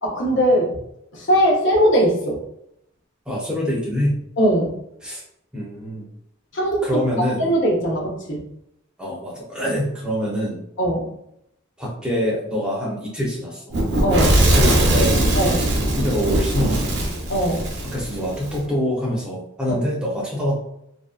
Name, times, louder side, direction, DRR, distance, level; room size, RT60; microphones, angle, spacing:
voice 1, 0.0-0.8 1.1-2.4 4.4-4.7 6.5-6.8 7.4-8.4 10.8-11.1 14.0-14.3 15.3-15.6 17.3-17.7 19.7-19.8, equal, 65° left, -1 dB, 0.6 m, -20 dB
voice 2, 3.3-4.1 5.0-5.2 5.5-6.1 6.8-7.5 9.0-10.6 11.8-13.8 14.3-15.7 16.0-17.0 17.8-20.6, equal, 5° right, -5 dB, 0.6 m, -25 dB
Fire / Explosion, 13.7-18.6, right 1 dB, 60° right, 0.6 m, -20 dB
2.6 x 2.2 x 2.3 m, 0.77 s
head